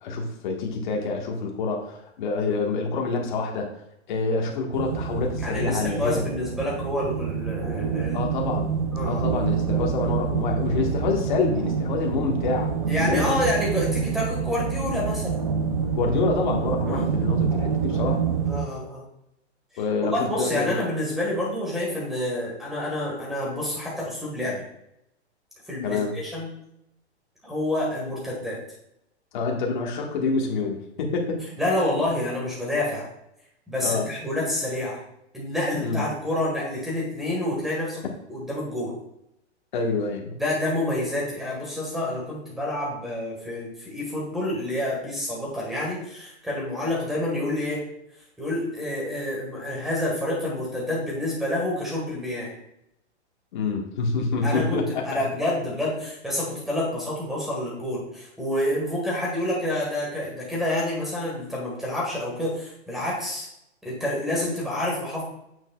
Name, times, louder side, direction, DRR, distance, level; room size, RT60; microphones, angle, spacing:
voice 1, 0.0-3.7 4.1-6.2 8.1-8.7 9.1-12.7 13.0-13.4 15.9-18.2 19.8-20.7 25.8-26.2 29.3-31.4 33.8-34.1 35.8-36.1 39.7-40.3 53.5-55.2, left 4 dB, 45° left, 0 dB, 1.5 m, -27 dB
sound 1, 4.7-18.6, right 6 dB, 35° right, 0.5 m, -27 dB
voice 2, 5.4-8.2 8.9-9.2 12.9-15.4 16.9-17.1 18.5-19.0 20.0-24.6 25.7-26.5 27.4-28.6 31.6-33.1 33.7-35.0 35.3-38.0 38.3-38.9 40.3-47.8 48.4-52.5 54.4-63.5 63.8-65.2, left 1 dB, ahead, -4 dB, 1.6 m, -28 dB
8.7 x 6.4 x 2.3 m, 0.80 s
hypercardioid pair, 165°, 34 cm